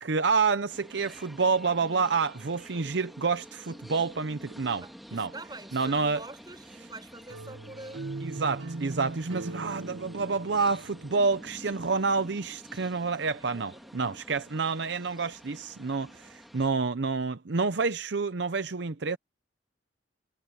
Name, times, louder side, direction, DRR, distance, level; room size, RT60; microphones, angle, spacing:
voice 1, 0.0-4.8 5.1-5.3 5.7-6.2 8.2-19.2, right 4 dB, 65° right, 0.7 m, -28 dB
sound 1, 0.7-16.7, equal, ahead, 2.3 m, -49 dB
voice 2, 4.8-8.0 13.5-13.9, right 2 dB, 20° right, 5.5 m, -46 dB
sound 2, 7.3-12.2, right 2 dB, 80° right, 1.3 m, -40 dB
head